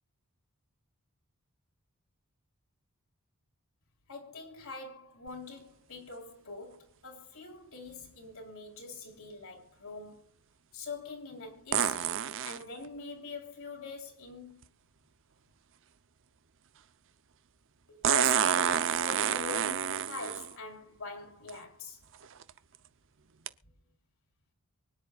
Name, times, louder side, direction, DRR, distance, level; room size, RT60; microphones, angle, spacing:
voice 1, 4.1-10.3 10.7-14.7 17.9-22.0, left 4 dB, 65° left, 4.4 m, -44 dB
sound 1, 5.3-5.4 11.7-12.6 14.6-14.7 18.0-20.5 21.5-21.6 22.2-22.5 23.5-23.6, right 8 dB, 60° right, 0.8 m, -28 dB
24.5 x 10.5 x 2.5 m
head